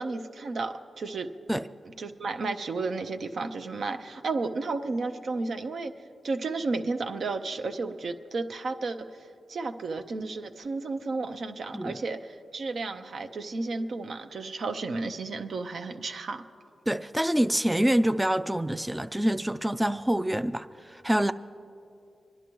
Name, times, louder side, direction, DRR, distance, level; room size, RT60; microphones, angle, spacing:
voice 1, 0.0-1.3 2.0-5.9 6.2-16.4, right 3 dB, 70° right, 7 dB, 0.6 m, -33 dB
voice 2, 16.9-21.3, right 1 dB, 10° right, 11 dB, 0.3 m, -26 dB
26.0 x 11.0 x 3.1 m, 2.6 s
cardioid pair, 70°, 0 cm